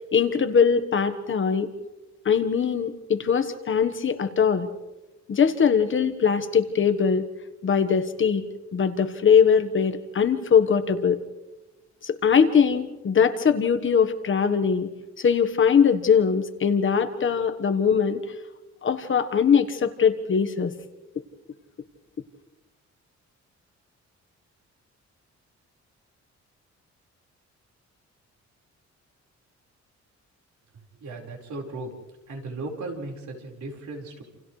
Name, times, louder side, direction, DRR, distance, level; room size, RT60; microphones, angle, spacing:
voice 1, 0.1-1.7 2.2-4.7 5.3-7.2 7.6-8.4 8.7-11.2 12.0-14.9 15.2-18.2 18.8-20.7, left 6 dB, 45° left, 8 dB, 1.3 m, -21 dB
voice 2, 31.0-31.9 32.3-34.2, right 2 dB, 80° right, 0 dB, 4.8 m, -36 dB
29.0 x 28.5 x 3.3 m, 1.1 s
wide cardioid pair, 150°, 29 cm